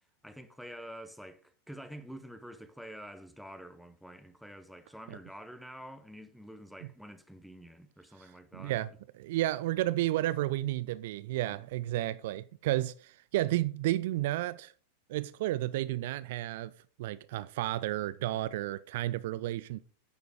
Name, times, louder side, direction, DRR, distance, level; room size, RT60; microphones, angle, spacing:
voice 1, 0.2-8.8 11.5-11.6, equal, ahead, 1.0 m, -48 dB
voice 2, 8.2-8.9 9.2-14.7 15.1-16.7 17.0-19.8, right 15 dB, 50° right, 0.4 m, -32 dB
10.0 x 6.9 x 5.0 m
figure-of-eight pair, 90°, 0 cm